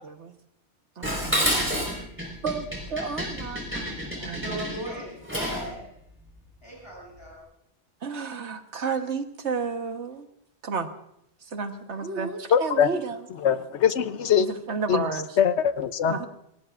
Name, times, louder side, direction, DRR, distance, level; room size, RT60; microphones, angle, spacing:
Dishes pots and pans, 1.0-5.7, equal, 10° right, 4.9 m, -29 dB
voice 1, 1.0-1.5 2.0-2.1 2.4-4.6 8.0-10.3 10.6-10.9 11.5-13.2 14.4-15.4 16.1-16.3, right 5 dB, 85° right, 6 dB, 1.5 m, -32 dB
voice 2, 4.4-5.9 6.6-7.4, right 1 dB, 25° left, -4 dB, 7.4 m, -38 dB
voice 3, 12.5-12.9 13.4-14.5 14.9-15.0 15.4-16.3, left 8 dB, 90° left, 11 dB, 1.1 m, -22 dB
27.0 x 19.5 x 2.5 m, 0.77 s
omnidirectional pair, 1.1 m